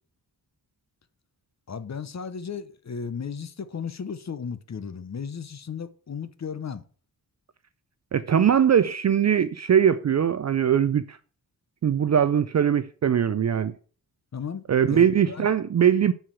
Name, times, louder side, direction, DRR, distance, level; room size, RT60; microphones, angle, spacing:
voice 1, 1.7-6.8 14.3-15.5, left 6 dB, 45° left, 0.8 m, -35 dB
voice 2, 8.1-11.2 11.8-13.7 14.7-16.1, right 8 dB, 45° right, 0.4 m, -21 dB
9.1 x 4.8 x 6.2 m
wide cardioid pair, 145°, 39 cm